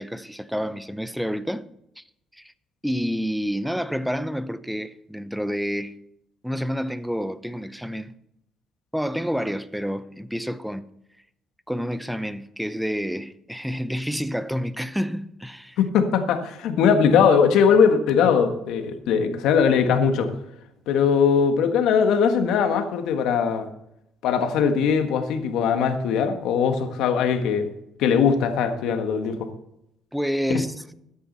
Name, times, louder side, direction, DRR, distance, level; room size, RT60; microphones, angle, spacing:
voice 1, 0.0-1.7 2.0-2.1 2.3-2.5 2.8-6.0 6.4-8.1 8.9-10.9 11.7-15.8 30.1-30.7, equal, ahead, 0.7 m, -29 dB
voice 2, 15.8-20.3 20.9-23.7 24.2-27.7 28.0-29.5 30.5-30.6, left 6 dB, 80° left, 1.5 m, -20 dB
13.5 x 9.9 x 4.2 m
cardioid pair, 105°, 0 cm